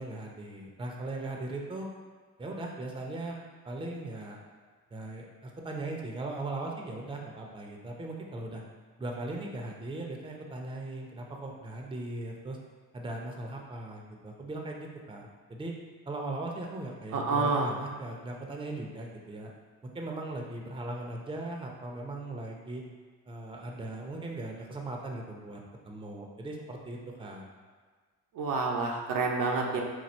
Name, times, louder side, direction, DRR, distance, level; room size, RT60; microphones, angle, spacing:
voice 1, 0.0-1.9 2.4-3.4 3.6-4.4 4.9-8.6 9.0-12.6 12.9-15.7 16.1-19.5 19.8-22.8 23.3-27.5, right 2 dB, 15° right, 0 dB, 0.7 m, -39 dB
voice 2, 17.1-17.7 28.4-29.8, right 4 dB, 65° right, 0 dB, 0.8 m, -28 dB
4.3 x 2.3 x 4.3 m, 1.5 s
supercardioid pair, 70°, 35 cm